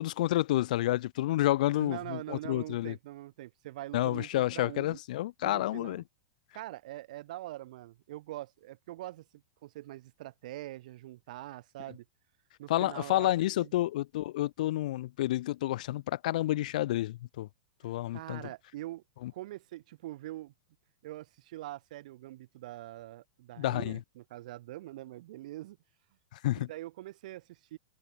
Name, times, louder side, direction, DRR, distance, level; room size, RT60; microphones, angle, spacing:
voice 1, 0.0-2.9 3.9-6.0 12.7-17.5 17.8-18.4 19.2-19.3 23.6-24.0 26.4-26.7, left 15 dB, 60° left, 0.5 m, -29 dB
voice 2, 1.8-5.0 5.4-6.0 6.5-12.0 12.6-13.3 13.6-13.7 17.8-19.0 19.3-20.5 21.0-25.8 26.5-27.8, right 16 dB, 55° right, 3.0 m, -43 dB
supercardioid pair, 170°, 5 cm